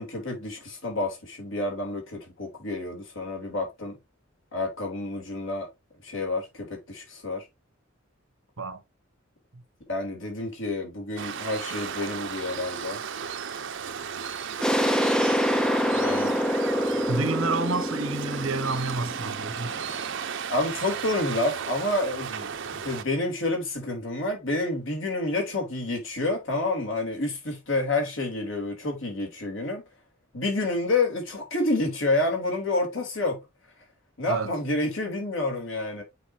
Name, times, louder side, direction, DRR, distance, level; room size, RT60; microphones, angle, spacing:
voice 1, 0.0-4.0 4.5-5.7 6.0-7.4 9.9-13.0 15.9-16.4 20.5-29.8 30.3-33.4 34.2-36.0, left 2 dB, 70° left, 3.4 m, -29 dB
Waves surf, 11.2-23.0, right 7 dB, 65° right, 0.8 m, -35 dB
sound 1, 14.6-20.1, equal, 5° left, 0.5 m, -26 dB
voice 2, 17.1-19.7 34.2-34.5, right 3 dB, 80° right, 1.2 m, -29 dB
8.2 x 5.2 x 2.8 m
head